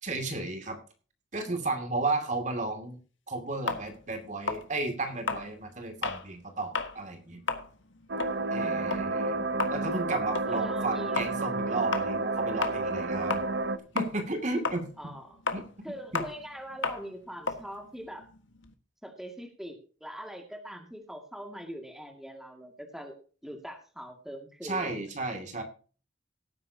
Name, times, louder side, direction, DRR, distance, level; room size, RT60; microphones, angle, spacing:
voice 1, 0.0-0.8 1.3-3.0 3.3-7.4 8.5-9.4 9.7-13.4 13.9-14.9 15.5-16.2 24.6-25.6, right 2 dB, 40° right, 5 dB, 2.4 m, -33 dB
sound 1, 3.7-6.3 6.6-7.0 7.3-13.7 14.0-18.7, left 4 dB, 85° left, 1.6 m, -34 dB
sound 2, 8.1-13.8, right 3 dB, 70° right, 1.0 m, -30 dB
voice 2, 10.5-11.2 15.0-15.4 15.8-18.3 19.0-23.1 23.4-24.9, equal, ahead, 3 dB, 2.1 m, -42 dB
17.5 x 9.5 x 2.8 m, 0.38 s
head